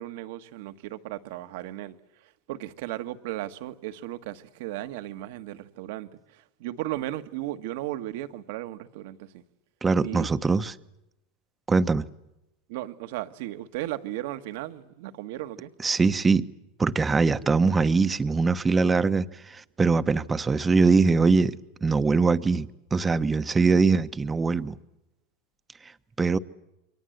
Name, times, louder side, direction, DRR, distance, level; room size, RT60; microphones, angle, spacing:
voice 1, 0.0-2.0 2.2-9.4 10.0-10.3 12.7-15.7, right 15 dB, 70° right, 1.6 m, -35 dB
voice 2, 9.8-10.7 11.7-12.1 15.8-16.5 16.8-24.8 26.2-26.4, right 4 dB, 20° right, 1.1 m, -22 dB
28.5 x 23.5 x 8.0 m
hypercardioid pair, 105°, 0 cm